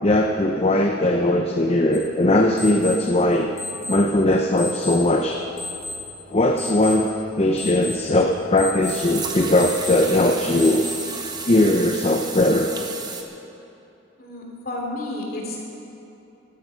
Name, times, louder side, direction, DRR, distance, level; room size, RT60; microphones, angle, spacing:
voice 1, 0.0-3.5 3.9-5.4 6.3-7.1 7.4-10.9 11.5-12.7, left 1 dB, 30° left, 2 dB, 0.6 m, -19 dB
sound 1, 1.9-11.2, left 2 dB, 75° left, 2.6 m, -36 dB
sound 2, 8.0-8.1 8.8-13.2, right 4 dB, 20° right, 1.0 m, -33 dB
voice 2, 14.2-15.6, left 1 dB, 45° left, -2 dB, 3.0 m, -31 dB
14.5 x 12.5 x 5.7 m, 2.9 s
head